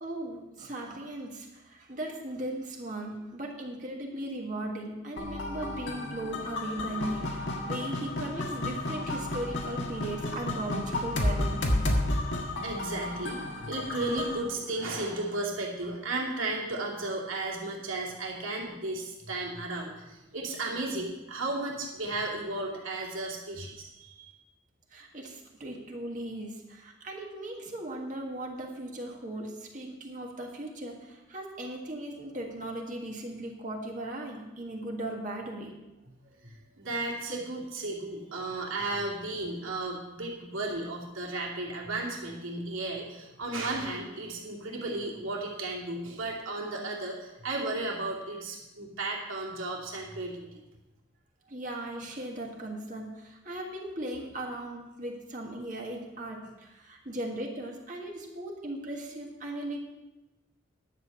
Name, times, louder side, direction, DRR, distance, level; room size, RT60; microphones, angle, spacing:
voice 1, 0.0-11.8 24.9-35.7 51.5-59.8, right 1 dB, 40° right, 0 dB, 1.6 m, -38 dB
sound 1, 5.2-14.4, left 1 dB, 70° left, 1.6 m, -32 dB
voice 2, 12.2-24.3 36.4-50.6, right 2 dB, 90° right, -2 dB, 2.7 m, -34 dB
11.0 x 8.2 x 5.6 m, 1.0 s
head